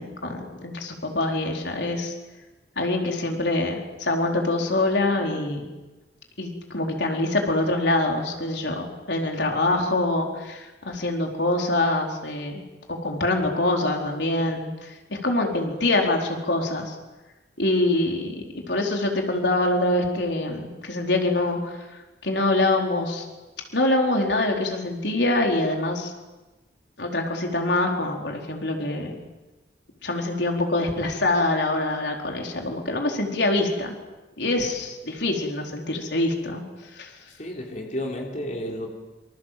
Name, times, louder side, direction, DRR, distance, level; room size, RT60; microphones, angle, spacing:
voice 1, 0.0-2.1 2.8-5.6 6.4-12.6 12.9-17.0 17.6-21.9 22.2-23.3 23.7-26.1 27.0-29.1 30.0-33.9 34.4-36.6 36.9-37.1, left 2 dB, 70° left, 1 dB, 4.4 m, -25 dB
voice 2, 37.4-38.9, left 1 dB, 40° left, 0 dB, 3.8 m, -31 dB
28.0 x 26.0 x 7.7 m, 1.1 s
head